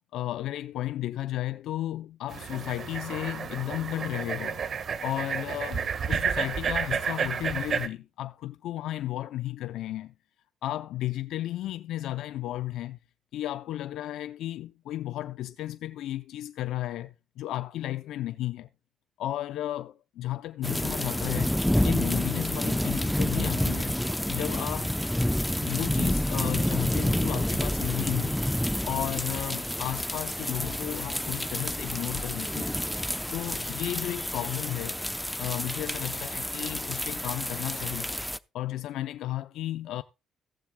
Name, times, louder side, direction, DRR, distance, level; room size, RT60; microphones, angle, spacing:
voice 1, 0.0-4.6 5.0-10.1 10.6-13.0 13.3-18.7 19.2-21.5 21.8-24.0 24.3-24.9 25.6-28.4 28.9-32.8 33.3-35.0 35.4-38.1 38.5-40.0, left 14 dB, 80° left, 0.5 m, -33 dB
sound 1, 2.3-7.9, right 6 dB, 55° right, 1.5 m, -31 dB
sound 2, 20.6-38.4, left 1 dB, 5° left, 0.7 m, -29 dB
15.5 x 14.5 x 2.2 m
cardioid pair, 80°, 0 cm